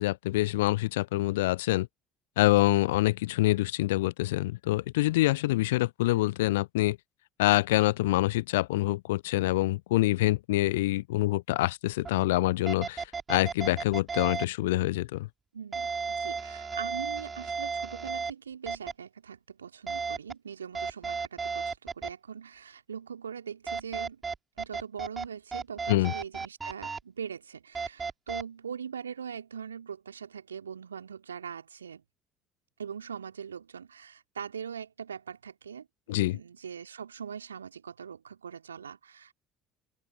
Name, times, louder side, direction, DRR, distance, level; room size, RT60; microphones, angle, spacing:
voice 1, 0.0-1.9 2.4-7.0 7.4-15.3 25.9-26.1 36.1-36.4, left 18 dB, 70° left, 0.3 m, -26 dB
sound 1, 12.0-12.1 12.7-14.5 15.7-18.3 18.7-18.9 19.9-20.3 20.7-22.1 23.7-25.3 25.5-27.0 27.7-28.4, right 5 dB, 25° right, 5.4 m, -34 dB
voice 2, 15.5-24.2 24.6-32.0 32.8-39.3, right 7 dB, 80° right, 2.7 m, -41 dB
open air
figure-of-eight pair, 60°, 0 cm